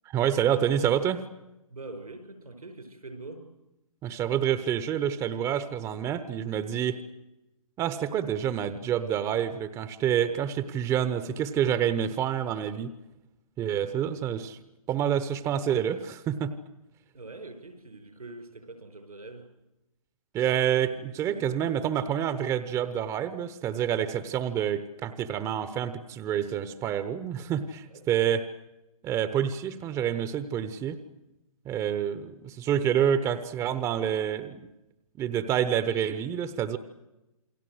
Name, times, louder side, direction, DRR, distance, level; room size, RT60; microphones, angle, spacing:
voice 1, 0.0-1.2 4.0-7.0 7.8-13.0 13.6-14.6 14.9-16.5 20.3-28.4 29.0-31.0 31.6-34.6 35.2-36.8, right 9 dB, 15° right, 13 dB, 1.0 m, -28 dB
voice 2, 1.7-3.5 17.1-19.5 27.9-28.0, right 2 dB, 85° right, 8 dB, 6.1 m, -43 dB
28.5 x 22.0 x 8.0 m, 0.97 s
figure-of-eight pair, 130°, 18 cm